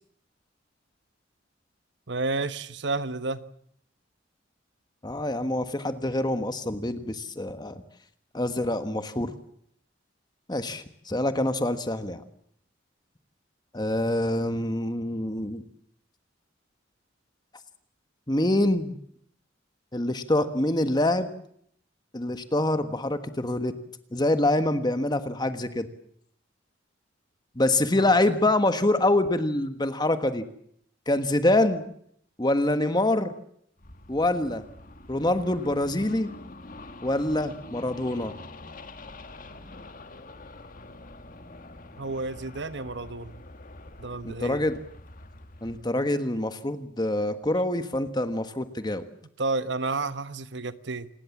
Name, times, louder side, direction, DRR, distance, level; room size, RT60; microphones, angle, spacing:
voice 1, 2.1-3.4 28.0-28.4 42.0-43.4 44.0-44.6 49.4-51.1, right 3 dB, 65° right, 13 dB, 1.2 m, -31 dB
voice 2, 5.0-7.8 8.3-9.3 10.5-12.2 13.7-15.6 18.3-18.9 19.9-21.3 22.1-23.7 24.1-25.9 27.6-30.5 31.1-31.8 32.4-33.3 34.1-34.6 35.1-36.3 37.0-38.3 44.4-44.8 45.6-49.0, left 1 dB, 20° left, 10 dB, 1.4 m, -25 dB
sound 1, 33.8-45.9, left 2 dB, 45° left, 1.8 m, -45 dB
28.0 x 20.0 x 7.3 m, 0.67 s
head